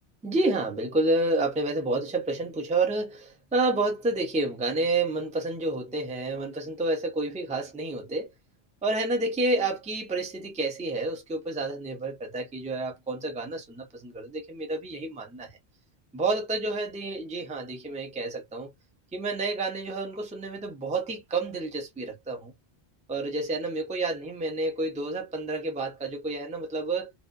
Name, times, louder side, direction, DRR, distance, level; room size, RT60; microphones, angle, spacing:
voice 1, 0.2-8.3 8.8-15.5 16.1-18.7 19.1-22.5 23.1-27.1, right 2 dB, 10° right, 0.4 m, -29 dB
2.5 x 2.1 x 2.4 m
omnidirectional pair, 1.1 m